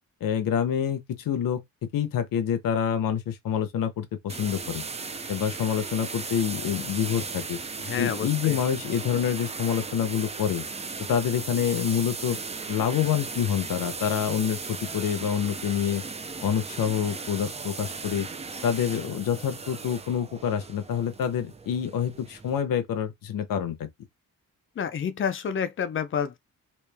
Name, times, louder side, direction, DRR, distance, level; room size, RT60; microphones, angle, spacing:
voice 1, 0.2-1.6 1.9-4.8 5.3-7.6 8.0-10.6 11.1-12.4 12.7-16.0 16.4-18.3 18.6-23.9, left 8 dB, 75° left, 0.9 m, -27 dB
sound 1, 4.3-22.6, right 4 dB, 20° right, 0.4 m, -37 dB
voice 2, 7.8-8.6 24.8-26.4, left 7 dB, 40° left, 0.5 m, -29 dB
3.1 x 3.0 x 3.4 m
wide cardioid pair, 160°, 34 cm